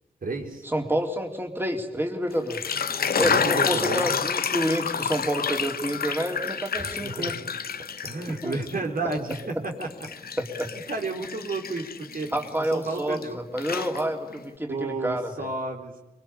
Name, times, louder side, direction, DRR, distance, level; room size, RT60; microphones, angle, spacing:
voice 1, 0.2-0.7 3.2-4.1 6.7-7.4 8.0-9.9 10.9-12.3 12.7-13.4 14.7-16.0, right 3 dB, 70° right, 2 dB, 4.3 m, -32 dB
voice 2, 0.7-2.8 3.2-7.3 8.3-8.6 10.4-10.7 12.3-13.2 13.5-15.5, equal, 15° right, 3 dB, 3.5 m, -28 dB
sound 1, 2.3-8.7 9.1-13.3 13.6-14.4, left 6 dB, 90° left, 0.9 m, -29 dB
24.5 x 23.5 x 9.9 m, 0.93 s
wide cardioid pair, 70°, 15 cm